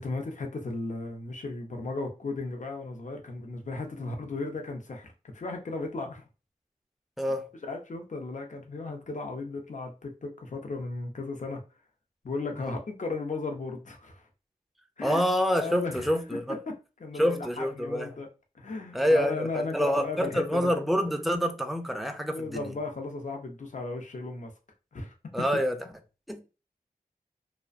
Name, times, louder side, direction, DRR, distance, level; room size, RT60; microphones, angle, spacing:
voice 1, 0.0-6.2 7.7-11.6 12.2-14.3 15.0-15.2 15.6-16.1 16.7-16.8 17.0-18.3 18.5-20.7 22.3-24.5 24.9-25.1, left 3 dB, 55° left, 0.5 m, -35 dB
voice 2, 7.2-7.5 12.6-12.7 15.0-16.6 17.2-18.1 18.9-22.7 25.3-25.8 26.3-26.4, equal, ahead, 0.4 m, -27 dB
2.5 x 2.1 x 2.4 m
wide cardioid pair, 70°, 15 cm